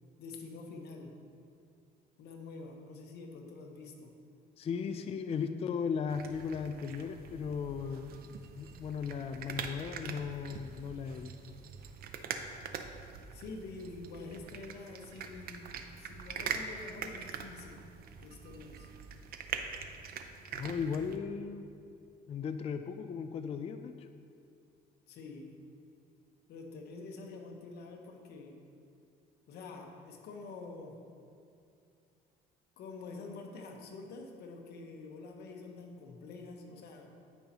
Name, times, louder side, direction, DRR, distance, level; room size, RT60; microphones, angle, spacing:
voice 1, 0.2-1.2 2.2-4.1 13.3-17.9 18.2-18.9 25.1-25.5 26.5-28.6 29.5-31.0 32.8-37.1, left 3 dB, 70° left, 2 dB, 1.2 m, -47 dB
voice 2, 4.6-8.1 8.6-11.3 20.5-21.7 22.3-24.1, left 6 dB, 35° left, 8 dB, 0.4 m, -36 dB
sound 1, 6.1-21.2, right 6 dB, 60° right, 0.6 m, -43 dB
14.0 x 5.5 x 3.0 m, 2.4 s
cardioid pair, 110°, 17 cm